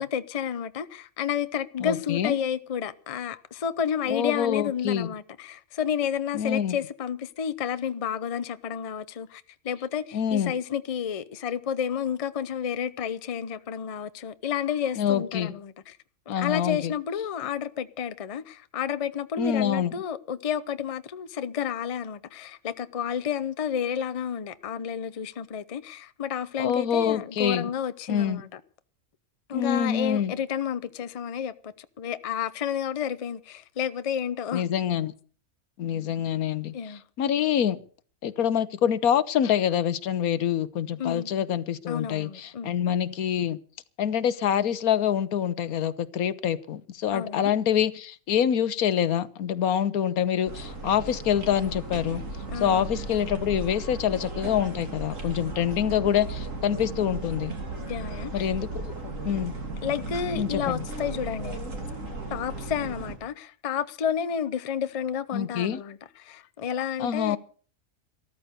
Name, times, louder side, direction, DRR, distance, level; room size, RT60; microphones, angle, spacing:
voice 1, 0.0-16.0 16.3-28.6 29.5-34.6 36.7-37.0 41.0-41.3 41.9-42.7 47.1-47.5 52.5-52.9 57.8-58.5 59.8-61.6 62.3-67.4, left 8 dB, 35° left, 0.5 m, -31 dB
voice 2, 1.8-2.4 4.1-5.1 6.3-6.8 10.1-10.5 15.0-15.5 16.3-16.9 19.4-19.9 26.6-27.7 28.1-28.4 29.5-30.3 34.5-35.1 35.8-36.7 37.2-37.8 38.2-43.6 44.0-52.2 52.6-57.5 58.3-58.9 59.2-59.5 60.3-60.8 65.3-65.8 67.0-67.4, left 9 dB, 85° left, 1.3 m, -26 dB
sound 1, 50.5-63.2, right 2 dB, 60° right, 3.1 m, -35 dB
13.5 x 13.5 x 6.7 m
omnidirectional pair, 1.5 m